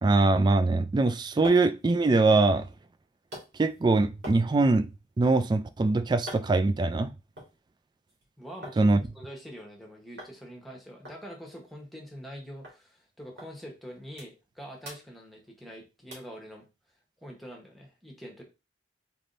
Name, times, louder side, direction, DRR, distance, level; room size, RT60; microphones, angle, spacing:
voice 1, 0.0-2.7 3.6-4.9 5.2-7.1 8.8-9.0, right 3 dB, 25° right, 0.3 m, -23 dB
sound 1, 0.9-8.8 9.1-9.8 10.2-10.4 10.6-10.7 11.0-12.4 12.6-12.8 13.4-13.5 13.9-14.5 14.8-15.7 16.1-16.4 16.9-17.0, equal, 80° right, 2.2 m, -47 dB
voice 2, 8.4-8.9 9.1-16.6 17.2-18.4, equal, ahead, 1.1 m, -44 dB
4.2 x 3.4 x 2.6 m
head